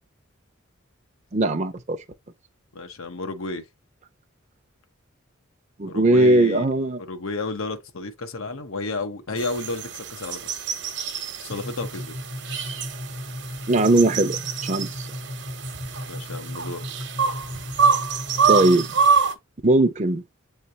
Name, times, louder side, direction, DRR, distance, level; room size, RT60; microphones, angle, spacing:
voice 1, 1.3-2.0 5.8-7.0 13.7-15.1 18.5-18.9 19.6-20.2, right 2 dB, 35° right, 0.6 m, -19 dB
voice 2, 2.7-3.7 5.9-6.7 7.0-10.7 11.4-12.1 16.1-16.9, left 3 dB, 90° left, 0.9 m, -32 dB
sound 1, 9.4-19.3, right 6 dB, 55° right, 1.0 m, -26 dB
sound 2, 11.5-19.1, left 1 dB, 35° left, 0.7 m, -36 dB
7.7 x 3.3 x 4.1 m
head